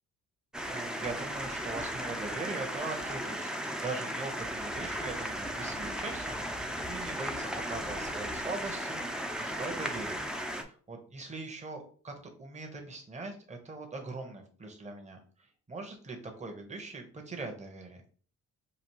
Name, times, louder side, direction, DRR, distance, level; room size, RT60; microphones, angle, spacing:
sound 1, 0.5-10.6, equal, ahead, 0.5 m, -36 dB
voice 1, 0.7-10.3 10.5-12.1 12.4-15.2 15.7-18.0, right 3 dB, 25° right, 3 dB, 1.0 m, -41 dB
5.1 x 2.4 x 2.9 m, 0.43 s
cardioid pair, 90°, 30 cm